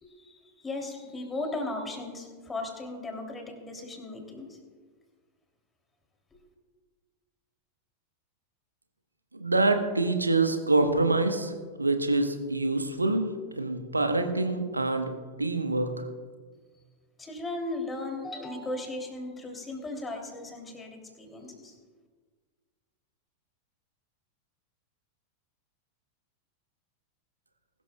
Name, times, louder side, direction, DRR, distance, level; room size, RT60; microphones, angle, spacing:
voice 1, 0.0-4.6 17.2-21.8, left 2 dB, 15° left, 2 dB, 2.9 m, -37 dB
voice 2, 9.3-11.5 11.8-13.2 13.5-15.1 15.4-15.9, right 2 dB, 80° right, 7 dB, 1.2 m, -25 dB
21.0 x 13.0 x 2.3 m, 1.5 s
figure-of-eight pair, 90°, 0 cm